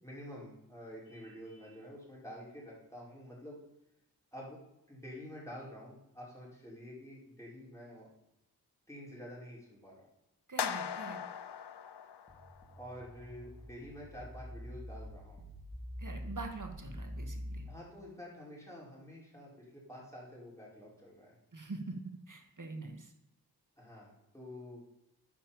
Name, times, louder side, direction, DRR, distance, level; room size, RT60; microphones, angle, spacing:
voice 1, 0.0-3.6 4.3-4.6 4.9-8.1 8.9-10.1 12.8-15.5 17.7-21.4 23.8-24.8, equal, 5° left, -5 dB, 5.0 m, -49 dB
Vehicle horn car horn honking, 1.0-1.8, right 1 dB, 30° left, 3.9 m, -59 dB
voice 2, 10.5-11.2 16.0-17.7 21.5-22.0 22.3-23.1, right 3 dB, 50° right, 4 dB, 1.9 m, -44 dB
sound 1, 10.6-12.8, left 8 dB, 90° left, 0.6 m, -39 dB
sound 2, 12.3-17.6, equal, 25° right, 3.7 m, -45 dB
10.0 x 7.4 x 7.2 m, 0.88 s
wide cardioid pair, 55°, 39 cm